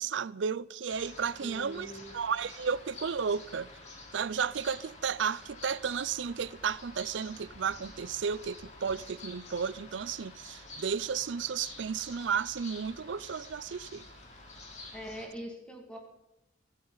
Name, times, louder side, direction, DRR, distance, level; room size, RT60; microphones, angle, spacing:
voice 1, 0.0-3.7 4.1-14.0, right 6 dB, 70° right, 0.5 m, -33 dB
sound 1, 0.9-15.2, left 2 dB, 35° left, 3.8 m, -49 dB
voice 2, 1.4-2.1 14.9-16.0, equal, 5° left, 2.1 m, -43 dB
24.0 x 14.0 x 4.0 m
head